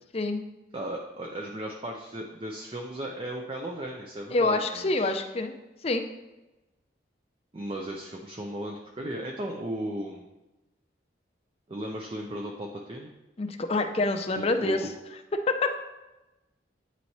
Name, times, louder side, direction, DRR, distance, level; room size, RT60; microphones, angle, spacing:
voice 1, 0.1-0.4 4.3-5.5 5.8-6.1 13.4-14.8 15.3-15.7, left 2 dB, 35° left, 6 dB, 0.5 m, -26 dB
voice 2, 0.7-5.2 7.5-10.3 11.7-13.1 14.4-14.9, right 1 dB, 30° right, 0 dB, 0.5 m, -36 dB
8.9 x 3.1 x 4.1 m, 1.0 s
head